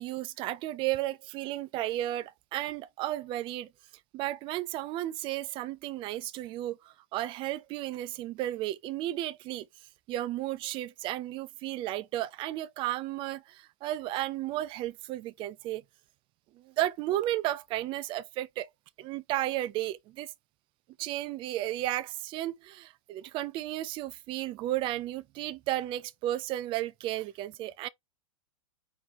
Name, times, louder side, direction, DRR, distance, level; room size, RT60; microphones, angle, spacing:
voice 1, 0.0-3.7 4.1-9.7 10.1-15.8 16.6-18.7 19.0-20.3 21.0-27.9, right 14 dB, 30° right, 0.3 m, -33 dB
4.3 x 2.7 x 3.4 m
hypercardioid pair, 120°, 18 cm